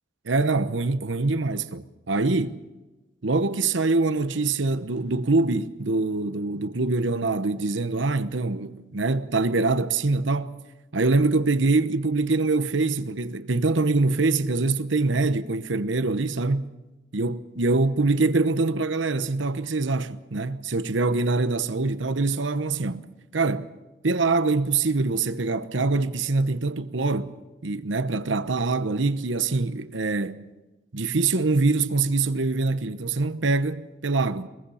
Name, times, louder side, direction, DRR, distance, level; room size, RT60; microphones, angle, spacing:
voice 1, 0.2-2.6 3.2-10.6 10.9-16.7 17.1-23.0 23.3-23.7 24.0-27.3 27.6-30.5 30.9-34.5, right 3 dB, 90° right, 1.0 m, -24 dB
23.0 x 22.0 x 5.7 m
head